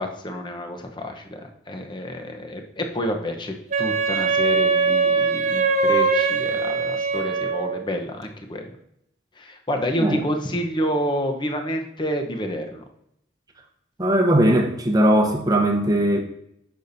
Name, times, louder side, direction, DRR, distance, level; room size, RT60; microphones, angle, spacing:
voice 1, 0.0-8.8 9.4-12.8, equal, 25° left, 4 dB, 0.8 m, -29 dB
Wind instrument woodwind instrument, 3.7-7.8, right 4 dB, 40° right, 1.1 m, -21 dB
voice 2, 14.0-16.2, right 1 dB, 20° right, 3 dB, 0.9 m, -19 dB
9.2 x 6.9 x 2.7 m, 0.76 s
head